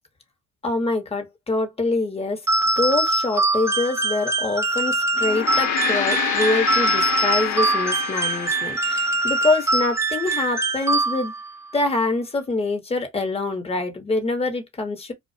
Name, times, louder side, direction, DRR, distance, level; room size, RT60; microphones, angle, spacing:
voice 1, 0.6-2.4 2.8-11.3 11.7-15.1, left 3 dB, 20° left, 0.9 m, -25 dB
sound 1, 2.5-11.5, right 2 dB, 10° right, 0.4 m, -23 dB
Gong, 5.1-9.8, left 8 dB, 75° left, 0.6 m, -27 dB
2.3 x 2.1 x 2.6 m
cardioid pair, 90°, 30 cm